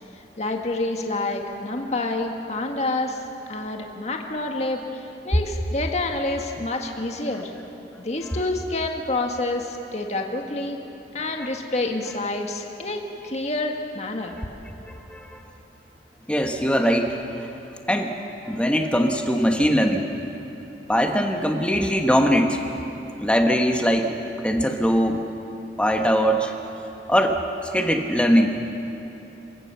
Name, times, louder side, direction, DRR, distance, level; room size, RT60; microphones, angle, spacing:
voice 1, 0.4-3.2 3.5-4.8 5.2-7.5 8.0-10.8 11.1-14.4, left 2 dB, 40° left, 2 dB, 1.7 m, -28 dB
voice 2, 15.1-15.4 16.3-17.2 17.9-18.1 18.5-20.1 20.9-22.6 23.2-25.2 25.8-26.5 27.1-27.4 27.7-28.5, equal, 5° left, 3 dB, 1.4 m, -21 dB
28.0 x 16.5 x 6.9 m, 2.9 s
head